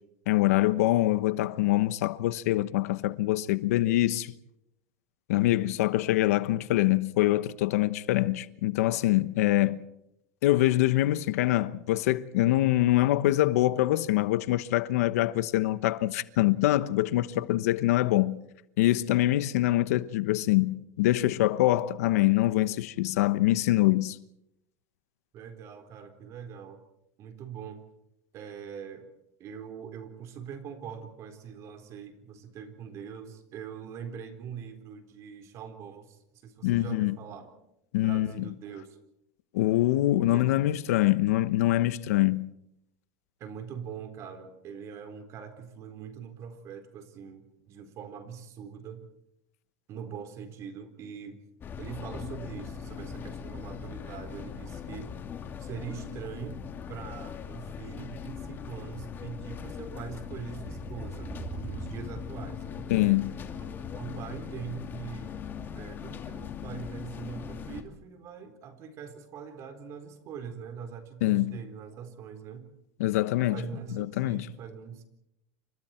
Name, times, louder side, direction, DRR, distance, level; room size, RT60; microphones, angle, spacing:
voice 1, 0.3-4.3 5.3-9.8 10.4-18.4 18.8-24.2 36.6-37.2 37.9-38.4 39.5-42.5 62.9-63.4 71.2-71.6 73.0-73.6 73.9-74.5, left 16 dB, 80° left, 1.1 m, -24 dB
voice 2, 25.3-26.8 27.2-27.8 28.3-29.1 29.4-37.5 38.0-39.0 40.3-40.6 43.4-49.0 49.9-51.4 51.8-55.1 55.6-63.2 64.0-65.3 65.8-72.7 73.4-75.0, right 7 dB, 35° right, 4.1 m, -42 dB
sound 1, 51.6-67.8, left 7 dB, 25° left, 2.7 m, -40 dB
sound 2, 58.2-65.7 65.9-66.0, right 5 dB, 20° right, 4.9 m, -47 dB
29.0 x 26.0 x 4.5 m
supercardioid pair, 150°, 8 cm